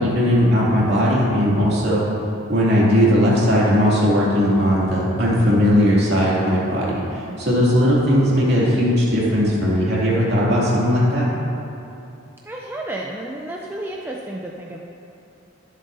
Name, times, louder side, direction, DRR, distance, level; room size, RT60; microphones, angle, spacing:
voice 1, 0.0-2.0 2.5-11.2, equal, 50° right, -6 dB, 2.6 m, -18 dB
voice 2, 12.5-14.8, right 1 dB, 10° right, -2 dB, 0.5 m, -31 dB
21.0 x 7.6 x 2.7 m, 2.7 s
head